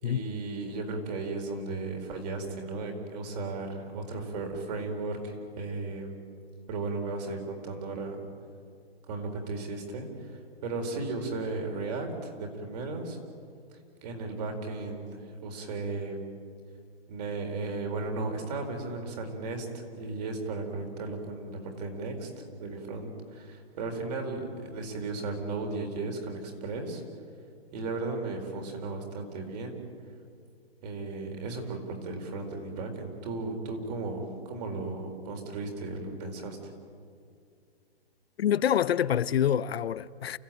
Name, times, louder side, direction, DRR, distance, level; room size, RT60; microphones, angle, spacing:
voice 1, 0.0-6.2 6.7-8.2 9.1-13.2 14.0-16.2 17.1-19.7 19.9-22.3 22.6-27.0 27.7-29.8 30.8-36.7, right 3 dB, 40° right, 4.3 m, -35 dB
voice 2, 38.4-40.4, left 9 dB, 70° left, 0.7 m, -26 dB
29.0 x 15.5 x 9.0 m
hypercardioid pair, 160°, 32 cm